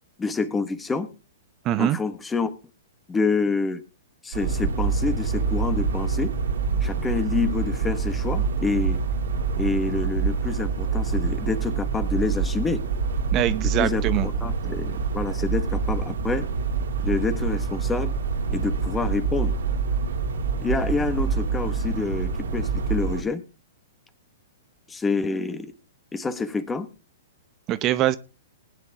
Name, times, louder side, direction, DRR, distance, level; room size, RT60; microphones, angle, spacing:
voice 1, 0.2-1.1 1.8-2.5 3.1-3.8 4.2-6.3 6.8-9.0 9.6-12.8 13.8-16.5 17.0-18.1 18.5-19.5 20.6-23.4 24.9-25.7 26.1-26.9, left 4 dB, 10° left, 10 dB, 1.4 m, -27 dB
voice 2, 1.6-2.0 13.3-14.3 27.7-28.2, right 13 dB, 30° right, 13 dB, 0.8 m, -23 dB
sound 1, 4.3-23.2, right 5 dB, 75° right, 2.4 m, -26 dB
20.0 x 9.8 x 2.9 m, 0.31 s
hypercardioid pair, 125°, 0 cm